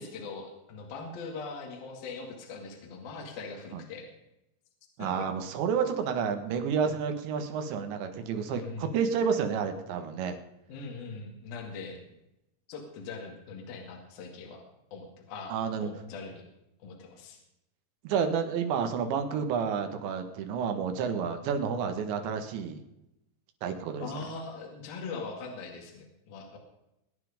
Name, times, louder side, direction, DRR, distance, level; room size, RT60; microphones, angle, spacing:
voice 1, 0.0-4.1 5.0-5.1 6.8-6.9 8.5-8.9 10.7-12.0 12.7-14.6 14.9-16.4 16.8-17.4 24.0-26.6, left 4 dB, 60° left, 2 dB, 3.8 m, -41 dB
voice 2, 5.0-10.4 15.5-15.9 18.0-22.8 23.6-24.3, right 6 dB, 80° right, 6 dB, 3.8 m, -30 dB
21.5 x 9.7 x 5.0 m, 0.88 s
omnidirectional pair, 5.1 m